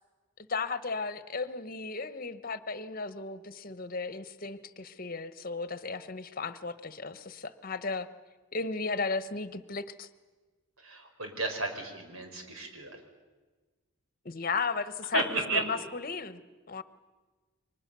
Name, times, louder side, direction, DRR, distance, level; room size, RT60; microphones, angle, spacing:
voice 1, 0.5-8.1 8.5-10.1 14.2-15.2 15.5-16.4 16.7-16.8, left 4 dB, 45° left, 13 dB, 1.1 m, -35 dB
voice 2, 10.8-13.0 15.1-15.6, right 3 dB, 85° right, 4 dB, 5.0 m, -33 dB
30.0 x 24.0 x 6.9 m, 1.3 s
head